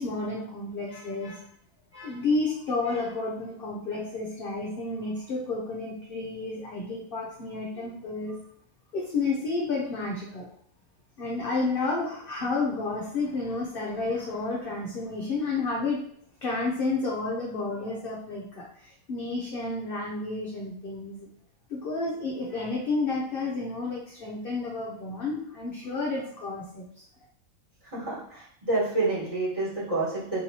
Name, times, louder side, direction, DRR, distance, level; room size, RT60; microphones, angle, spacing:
voice 1, 0.0-1.5 1.9-8.4 8.9-10.5 11.2-16.1 16.4-21.3 21.7-27.1, left 3 dB, 55° left, -3 dB, 0.7 m, -31 dB
voice 2, 27.9-30.4, right 2 dB, 25° right, -7 dB, 1.4 m, -28 dB
4.5 x 3.0 x 2.8 m, 0.64 s
omnidirectional pair, 1.6 m